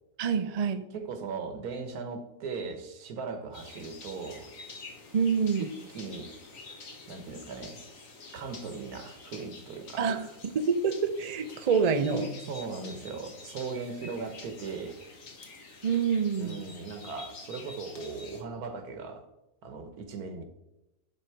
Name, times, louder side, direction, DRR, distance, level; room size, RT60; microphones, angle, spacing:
voice 1, 0.2-0.8 5.1-5.6 10.0-10.2 10.5-12.3 15.8-16.6, right 6 dB, 65° right, 9 dB, 0.3 m, -26 dB
voice 2, 0.9-4.5 5.6-6.4 7.1-7.8 8.3-10.3 12.5-15.0 16.4-19.2 19.6-20.4, right 4 dB, 85° right, 7 dB, 1.5 m, -38 dB
sound 1, 3.5-18.4, left 3 dB, 60° left, 1.7 m, -48 dB
11.0 x 4.0 x 4.6 m, 0.94 s
omnidirectional pair, 1.6 m